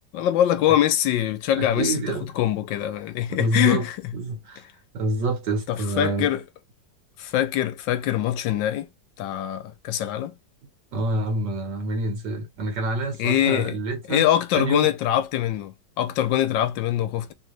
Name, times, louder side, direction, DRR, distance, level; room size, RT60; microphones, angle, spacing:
voice 1, 0.0-4.0 5.7-6.4 7.2-8.9 9.2-10.3 13.2-13.8 14.1-17.3, left 11 dB, 85° left, 1.4 m, -23 dB
voice 2, 1.5-2.3 3.3-3.8 4.1-4.6 4.9-6.3 10.9-14.3 14.5-14.9, right 2 dB, 70° right, 2.2 m, -27 dB
3.9 x 2.9 x 3.2 m
omnidirectional pair, 2.0 m